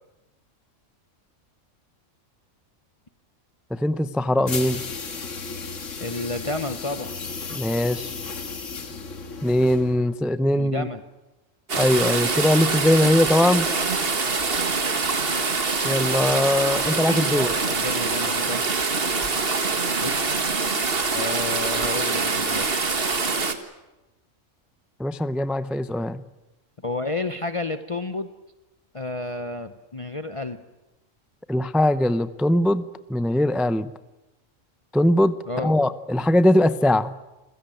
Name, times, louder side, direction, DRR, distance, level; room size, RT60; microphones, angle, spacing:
voice 1, 3.7-4.8 7.5-8.1 9.4-10.9 11.8-13.7 15.8-17.5 25.0-26.2 31.5-32.8 33.1-33.9 34.9-37.1, left 1 dB, ahead, 13 dB, 0.4 m, -21 dB
sound 1, 4.4-10.1, left 4 dB, 75° left, 2.0 m, -34 dB
voice 2, 6.0-7.1 10.5-11.0 17.3-18.6 20.0-20.4 21.1-22.9 26.8-28.3 28.9-30.6 35.5-35.7, left 2 dB, 30° left, 9 dB, 0.8 m, -31 dB
sound 2, 11.7-23.5, right 4 dB, 50° right, 1.8 m, -24 dB
28.0 x 16.5 x 9.2 m, 1.0 s
omnidirectional pair, 1.3 m